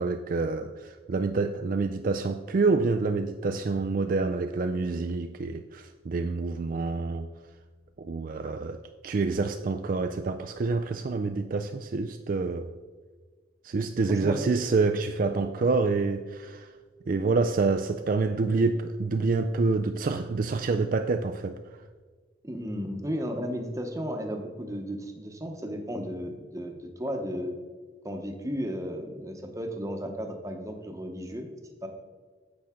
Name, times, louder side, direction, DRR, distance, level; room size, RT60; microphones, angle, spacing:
voice 1, 0.0-7.3 8.0-12.7 13.6-16.7 17.1-21.6, right 3 dB, 45° right, 0.3 m, -27 dB
voice 2, 14.1-14.5 22.4-27.6 28.0-31.5 31.8-31.9, equal, 15° right, 0.9 m, -34 dB
10.0 x 7.7 x 3.7 m
head